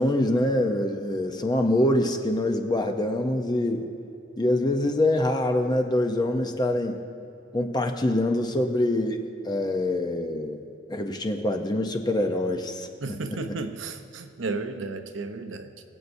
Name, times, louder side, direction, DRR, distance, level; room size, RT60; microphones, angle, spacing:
voice 1, 0.0-3.9 4.4-7.0 7.5-10.6 10.9-13.6, left 1 dB, 20° left, 5 dB, 0.6 m, -25 dB
voice 2, 13.0-15.7, right 3 dB, 75° right, 8 dB, 0.7 m, -33 dB
22.5 x 8.2 x 2.6 m, 2.8 s
head